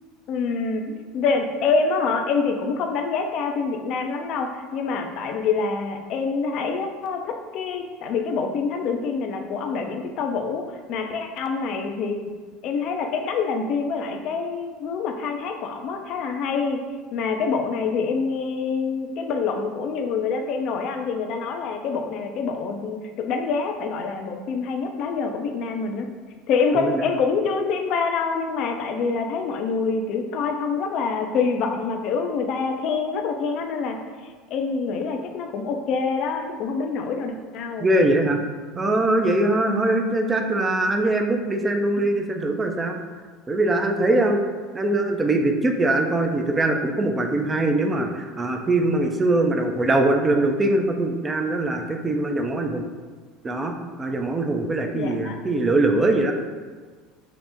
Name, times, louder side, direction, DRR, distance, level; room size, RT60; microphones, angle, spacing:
voice 1, 0.3-12.3 12.6-16.8 17.1-26.1 26.5-34.0 34.2-37.9 54.9-55.4, left 5 dB, 55° left, 4 dB, 0.4 m, -26 dB
voice 2, 37.8-38.4 38.7-43.0 43.5-44.4 44.7-52.9 53.4-56.3, right 2 dB, 25° right, 4 dB, 0.4 m, -22 dB
2.8 x 2.0 x 3.4 m, 1.5 s
hypercardioid pair, 75°, 0 cm